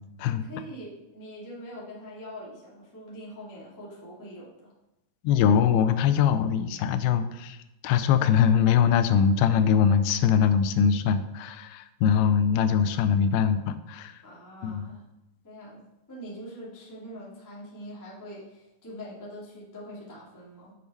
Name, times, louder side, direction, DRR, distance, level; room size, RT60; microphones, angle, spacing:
voice 1, 0.3-4.7 14.2-15.0 15.4-20.7, equal, 10° left, -6 dB, 1.0 m, -43 dB
voice 2, 5.2-7.6 7.8-14.1 14.6-14.9, left 7 dB, 85° left, 11 dB, 2.4 m, -22 dB
8.3 x 6.6 x 4.2 m, 0.90 s
omnidirectional pair, 4.6 m